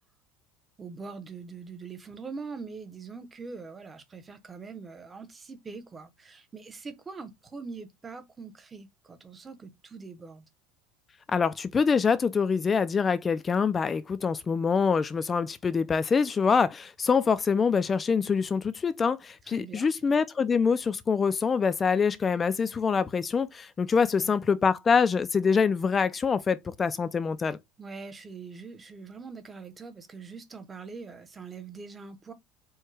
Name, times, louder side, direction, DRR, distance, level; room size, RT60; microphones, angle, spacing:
voice 1, 0.8-10.5 19.4-19.9 24.0-24.4 27.8-32.3, right 4 dB, 15° right, 0.7 m, -43 dB
voice 2, 11.3-27.6, left 5 dB, 20° left, 0.3 m, -25 dB
4.6 x 2.2 x 4.6 m
cardioid pair, 155°, 0 cm